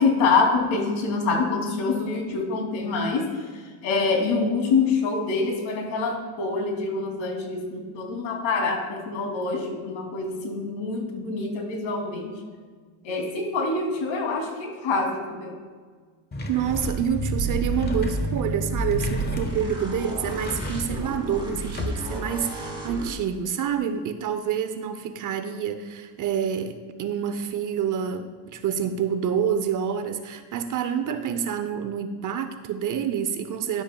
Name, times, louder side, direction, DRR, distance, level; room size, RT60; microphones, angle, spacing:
voice 1, 0.0-3.2 3.8-12.3 13.0-15.5, left 4 dB, 70° left, 1 dB, 2.9 m, -25 dB
sound 1, 16.3-22.3, left 2 dB, 20° left, 1.1 m, -35 dB
voice 2, 16.5-33.8, right 8 dB, 40° right, 10 dB, 0.6 m, -28 dB
sound 2, 16.7-23.1, right 2 dB, 10° right, 2.5 m, -31 dB
13.0 x 10.5 x 2.3 m, 1.5 s
cardioid pair, 125°, 48 cm